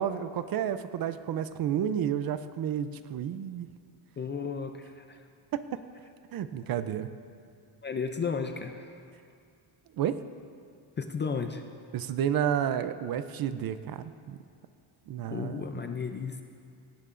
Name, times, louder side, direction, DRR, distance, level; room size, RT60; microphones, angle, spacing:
voice 1, 0.0-3.7 5.5-5.8 6.3-7.1 10.0-10.2 11.9-14.4 15.1-15.6, right 9 dB, 50° right, 12 dB, 0.5 m, -31 dB
voice 2, 4.2-5.2 7.8-8.9 11.0-11.6 15.3-16.4, left 5 dB, 25° left, 6 dB, 0.4 m, -33 dB
17.5 x 17.5 x 2.5 m, 2.3 s
cardioid pair, 155°, 50 cm